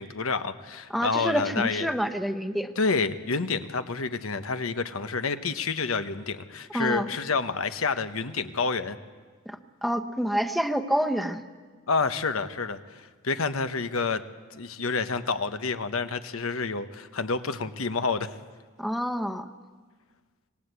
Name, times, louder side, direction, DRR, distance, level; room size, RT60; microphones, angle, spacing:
voice 1, 0.0-1.9 2.8-9.0 11.9-14.2 14.5-18.3, left 4 dB, 85° left, 10 dB, 1.1 m, -29 dB
voice 2, 0.9-2.7 6.7-7.1 9.5-11.4 18.8-19.5, equal, ahead, 7 dB, 1.0 m, -28 dB
25.5 x 20.0 x 8.3 m, 1.5 s
head